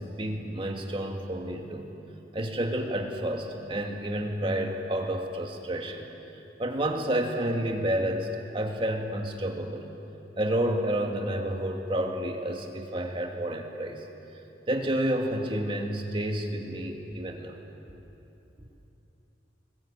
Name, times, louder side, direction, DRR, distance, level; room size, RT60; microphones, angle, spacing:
voice 1, 0.0-1.9 2.3-6.1 6.6-9.9 10.4-14.0 14.7-17.6, right 1 dB, 30° right, 2 dB, 2.2 m, -30 dB
21.0 x 21.0 x 8.8 m, 3.0 s
head